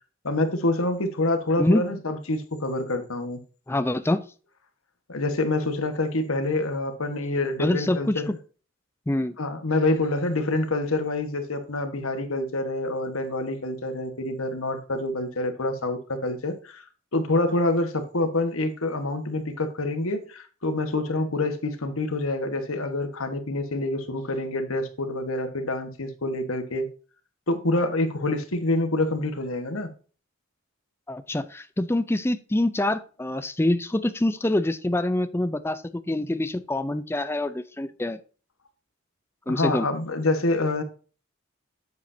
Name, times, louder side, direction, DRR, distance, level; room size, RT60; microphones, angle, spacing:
voice 1, 0.2-3.4 5.1-8.3 9.4-16.8 17.1-26.9 27.5-29.9 39.5-40.8, left 2 dB, 85° left, 1.4 m, -26 dB
voice 2, 3.7-4.3 7.6-8.2 9.1-9.4 31.1-38.2 39.5-39.9, left 1 dB, 10° left, 0.4 m, -25 dB
8.3 x 7.8 x 2.7 m
head